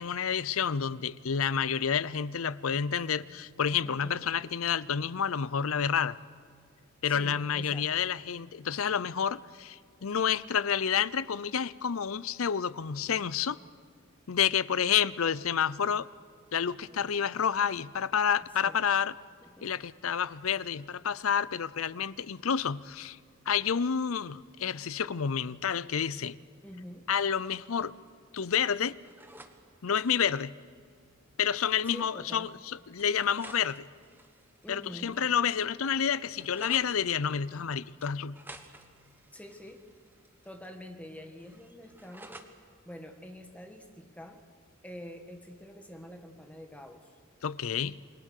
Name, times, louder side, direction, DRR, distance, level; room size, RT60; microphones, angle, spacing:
voice 1, 0.0-6.2 7.0-13.6 14.3-16.1 16.5-19.1 19.6-23.2 23.5-26.4 27.1-27.9 28.3-29.0 29.8-30.5 31.4-33.8 34.7-38.4 47.4-48.0, left 7 dB, 85° left, 0.6 m, -29 dB
voice 2, 3.8-4.3 7.1-8.1 16.9-17.0 18.6-18.8 19.4-19.9 26.6-27.1 31.9-32.5 34.6-35.2 39.3-39.9 40.4-42.4 42.8-44.4 44.8-47.2, left 1 dB, 5° left, 1.8 m, -46 dB
sound 1, 27.4-28.1 28.3-29.6 29.9-30.3 31.4-31.5 31.9-32.0 33.0-35.2 35.5-37.0 38.0-40.8 41.1-42.5, right 2 dB, 10° right, 1.4 m, -52 dB
28.5 x 22.0 x 6.6 m
head